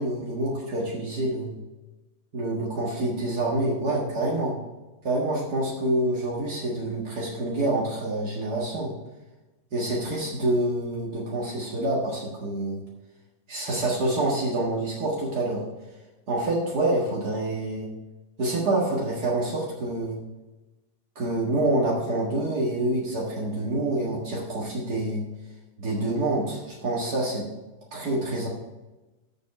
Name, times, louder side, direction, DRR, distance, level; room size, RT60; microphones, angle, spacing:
voice 1, 0.0-1.6 2.3-4.5 5.0-8.9 9.7-12.8 13.5-15.6 16.3-17.9 18.4-20.2 21.2-25.2 25.8-27.5 27.9-28.5, right 1 dB, 75° right, -5 dB, 2.3 m, -27 dB
8.2 x 7.1 x 5.4 m, 1.1 s
omnidirectional pair, 1.7 m